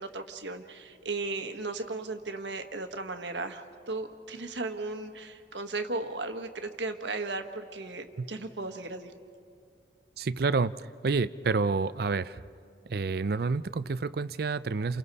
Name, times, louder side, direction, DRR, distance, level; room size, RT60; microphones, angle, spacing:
voice 1, 0.0-9.1, right 3 dB, 90° right, 7 dB, 1.4 m, -36 dB
voice 2, 10.2-12.4 12.9-15.0, right 4 dB, 60° right, 14 dB, 0.5 m, -29 dB
29.5 x 28.5 x 4.2 m, 2.4 s
head